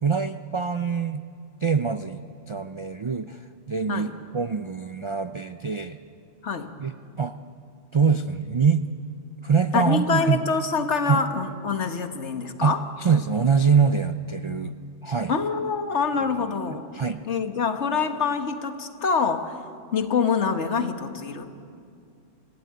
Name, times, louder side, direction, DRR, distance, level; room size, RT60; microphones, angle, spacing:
voice 1, 0.0-1.2 1.6-3.4 3.7-6.0 6.8-7.3 7.9-8.9 9.4-10.4 11.1-11.2 12.6-12.7 13.0-14.7 15.0-15.3 16.9-17.2, right 6 dB, 50° right, 9 dB, 0.3 m, -24 dB
voice 2, 6.4-6.8 9.7-12.8 15.3-16.8 17.3-19.6 19.9-21.5, left 5 dB, 65° left, 7 dB, 1.6 m, -25 dB
25.5 x 16.0 x 9.3 m, 2.4 s
omnidirectional pair, 1.3 m